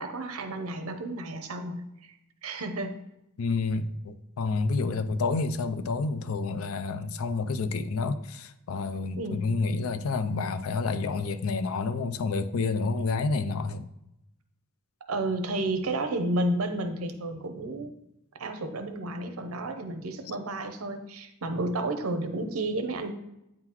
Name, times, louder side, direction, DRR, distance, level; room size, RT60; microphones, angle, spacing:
voice 1, 0.0-2.1 2.4-3.0 9.2-9.5 15.1-17.9 18.4-23.1, right 2 dB, 75° right, 7 dB, 0.7 m, -31 dB
voice 2, 3.4-13.9, left 3 dB, 70° left, 10 dB, 0.4 m, -29 dB
8.7 x 3.8 x 3.0 m, 0.86 s
head